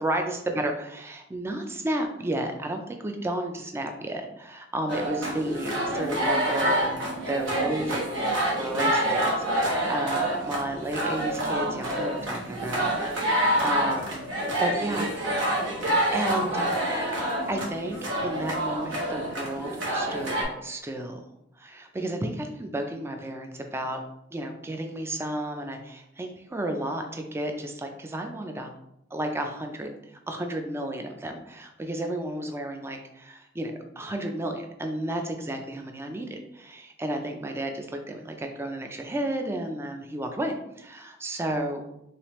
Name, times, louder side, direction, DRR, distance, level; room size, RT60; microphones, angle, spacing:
voice 1, 0.0-6.9 7.3-8.3 8.6-14.2 14.6-15.6 16.1-16.7 17.5-21.3 21.6-24.0 24.3-28.7 29.1-41.8, right 1 dB, 15° right, 4 dB, 0.3 m, -32 dB
sound 1, 4.9-20.4, right 1 dB, 85° right, 1.1 m, -27 dB
3.2 x 3.2 x 3.0 m, 0.81 s
head